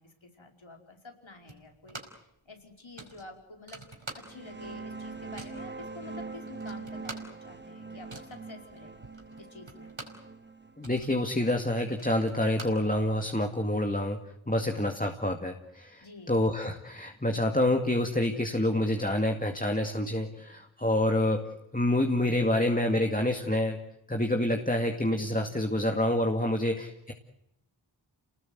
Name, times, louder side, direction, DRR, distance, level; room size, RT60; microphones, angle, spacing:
voice 1, 0.0-2.0 2.4-3.8 4.1-8.9 9.4-9.9 16.0-16.4, left 3 dB, 75° left, 2 dB, 5.1 m, -49 dB
sound 1, 1.5-2.3 2.6-2.7 3.0-4.7 4.9-5.7 6.2-6.3 6.5-10.3 10.6-13.4, right 2 dB, 70° right, 4.9 m, -46 dB
sound 2, 4.1-13.4, right 3 dB, 25° right, 1.7 m, -44 dB
voice 2, 10.8-14.2 14.5-23.8 24.1-27.1, left 1 dB, 15° left, 3 dB, 2.2 m, -27 dB
29.0 x 19.5 x 8.1 m, 0.83 s
wide cardioid pair, 45°, 47 cm